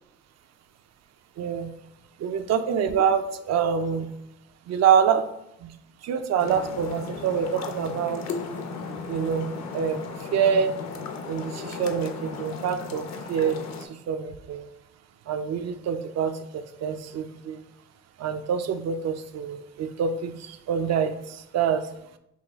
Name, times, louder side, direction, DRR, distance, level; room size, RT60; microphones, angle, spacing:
voice 1, 1.4-1.7 2.2-4.1 4.7-5.3 5.6-5.7 6.0-8.2 9.1-9.5 9.7-10.7 11.3-14.7 15.3-17.6 18.2-21.9, right 7 dB, 60° right, 9 dB, 0.5 m, -26 dB
sound 1, 6.4-13.9, left 4 dB, 65° left, 0.7 m, -36 dB
5.7 x 2.3 x 3.4 m, 0.81 s
cardioid pair, 90°, 30 cm